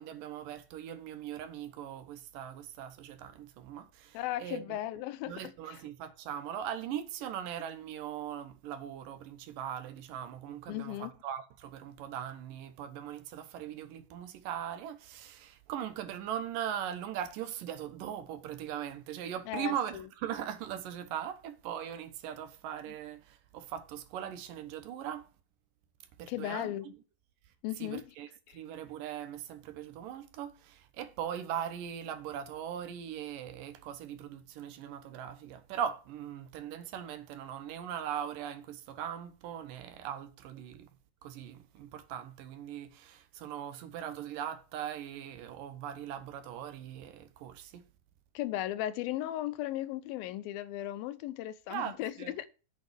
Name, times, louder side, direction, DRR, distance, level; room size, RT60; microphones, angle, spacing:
voice 1, 0.0-4.8 5.3-25.3 26.2-26.7 27.8-40.9 41.2-47.8 51.7-52.3, right 9 dB, 75° right, 2.5 m, -40 dB
voice 2, 4.1-5.8 10.7-11.1 19.5-20.1 22.9-23.0 26.3-26.9 27.6-28.0 28.5-28.6 48.3-52.5, left 14 dB, 90° left, 2.6 m, -36 dB
8.4 x 5.3 x 7.0 m
omnidirectional pair, 4.1 m